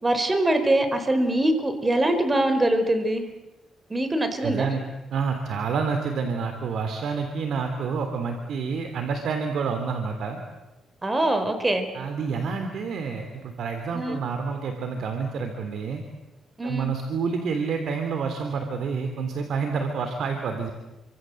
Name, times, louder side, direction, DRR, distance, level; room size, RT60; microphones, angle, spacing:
voice 1, 0.0-3.2 3.9-4.7 11.0-11.9 13.9-14.2 16.6-16.9, right 1 dB, 20° right, 8 dB, 4.7 m, -23 dB
voice 2, 4.4-4.8 5.1-10.4 11.9-16.0 16.6-20.7, right 5 dB, 70° right, 5 dB, 3.3 m, -28 dB
29.5 x 25.5 x 7.9 m, 1.1 s
cardioid pair, 100°, 0 cm